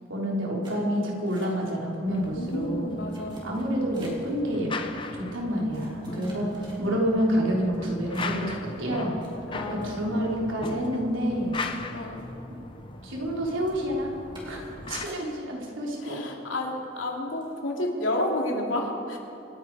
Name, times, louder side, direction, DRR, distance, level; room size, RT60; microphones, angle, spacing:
voice 1, 0.1-2.9 3.4-4.7 5.1-6.5 6.8-9.2 9.7-11.6 13.0-14.1 14.4-16.2, equal, 90° right, -2 dB, 3.6 m, -28 dB
sound 1, 0.6-1.9 2.2-2.6 3.1-4.4 5.0-5.1 5.7-7.1 7.6-7.8 8.1-10.3 10.6-10.7 11.1-11.2 11.5-12.6 12.9-13.3 13.6-13.8 14.3-14.7 15.1-15.6 15.9-16.6 16.9-17.0 17.4-17.6, right 1 dB, 25° right, 3.1 m, -51 dB
sound 2, 2.1-15.1, left 3 dB, 25° left, 0.8 m, -39 dB
voice 2, 2.3-3.4 6.1-7.0 9.5-10.4 11.9-12.3 14.8-15.2 16.0-19.2, left 1 dB, 80° left, 0 dB, 2.7 m, -31 dB
26.0 x 10.5 x 4.8 m, 2.9 s
head